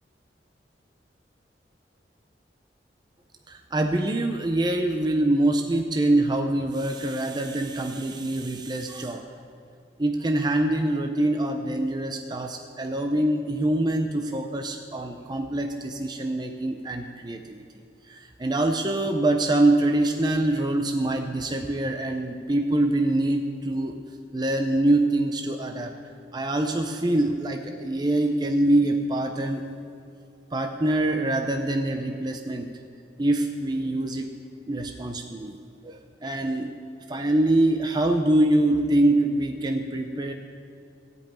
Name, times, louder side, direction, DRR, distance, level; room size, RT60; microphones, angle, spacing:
voice 1, 3.5-9.3 10.0-17.6 18.1-24.0 24.3-25.9 26.3-29.6 30.5-32.7 33.2-34.3 34.7-35.6 35.8-36.7 37.1-40.3, right 1 dB, 25° right, 4 dB, 0.6 m, -24 dB
15.5 x 5.4 x 8.8 m, 2.5 s
head